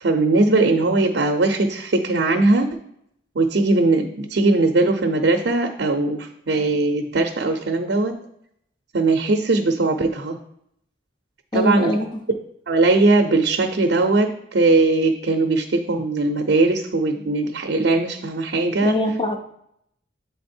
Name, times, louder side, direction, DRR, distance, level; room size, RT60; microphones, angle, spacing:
voice 1, 0.0-2.7 3.4-8.1 8.9-10.4 11.5-11.9 12.7-18.9, right 2 dB, 70° right, 4 dB, 0.6 m, -19 dB
voice 2, 11.5-12.2 18.8-19.4, left 1 dB, 25° left, 4 dB, 0.6 m, -22 dB
7.5 x 3.5 x 4.3 m, 0.74 s
head